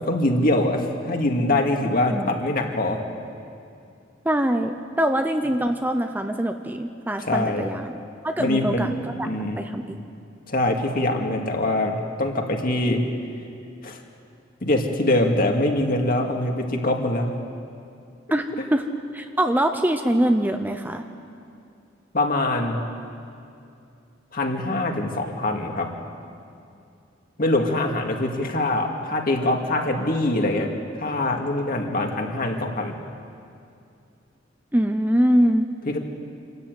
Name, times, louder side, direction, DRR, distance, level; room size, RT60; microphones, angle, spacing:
voice 1, 0.0-3.0 7.2-7.6 8.4-9.6 10.5-13.0 13.8-14.0 14.6-17.3 22.1-22.8 24.3-25.9 27.4-30.7 31.0-33.0 35.9-36.0, left 1 dB, 50° left, 2 dB, 2.4 m, -23 dB
voice 2, 4.2-8.0 8.2-9.3 9.6-10.0 18.3-18.8 19.1-21.0 34.7-35.7, right 1 dB, 10° right, 6 dB, 0.8 m, -23 dB
26.5 x 13.5 x 9.4 m, 2.5 s
head